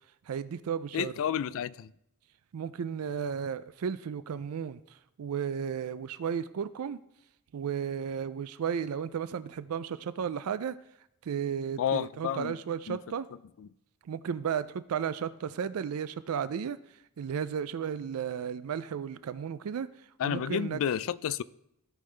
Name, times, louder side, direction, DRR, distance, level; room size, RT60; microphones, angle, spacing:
voice 1, 0.3-1.1 2.5-7.0 7.5-10.8 11.2-13.3 14.0-20.8, right 7 dB, 75° right, 0.4 m, -34 dB
voice 2, 0.9-1.9 11.8-12.5 12.9-13.0 20.2-21.4, left 8 dB, 65° left, 0.3 m, -30 dB
16.0 x 5.4 x 3.3 m
head